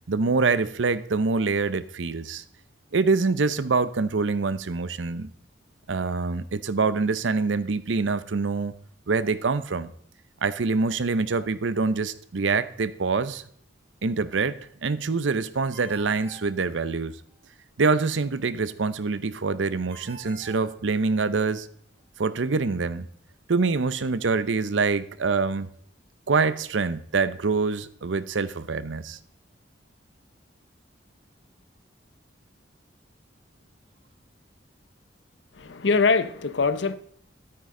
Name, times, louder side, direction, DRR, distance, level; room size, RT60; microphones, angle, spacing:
voice 1, 0.1-2.4 2.9-5.3 5.9-8.7 9.1-9.9 10.4-13.4 14.0-17.2 17.8-21.7 22.2-23.1 23.5-25.7 26.3-29.2, right 4 dB, 85° right, 0.7 m, -25 dB
Ringtone, 15.7-17.3 19.9-21.5, right 2 dB, 30° right, 3.1 m, -48 dB
voice 2, 35.5-37.0, left 4 dB, 75° left, 0.7 m, -23 dB
13.0 x 9.5 x 3.7 m
head